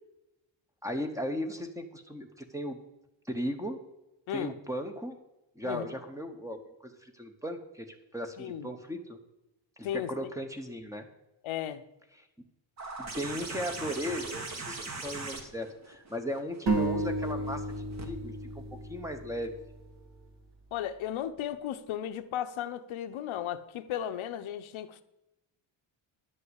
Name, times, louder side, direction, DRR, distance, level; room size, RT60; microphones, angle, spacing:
voice 1, 0.8-2.8 3.2-3.8 4.3-5.2 5.6-7.9 8.1-9.2 9.8-11.1 13.0-18.6 18.9-19.5, equal, 5° right, 1.0 m, -37 dB
voice 2, 8.4-8.7 9.8-10.3 11.4-11.8 20.7-25.0, left 10 dB, 80° left, 0.9 m, -35 dB
sound 1, 12.8-18.1 19.4-19.5, right 3 dB, 35° right, 1.5 m, -41 dB
sound 2, 16.7-20.3, right 2 dB, 55° right, 2.4 m, -33 dB
11.0 x 5.5 x 8.1 m
cardioid pair, 150°, 47 cm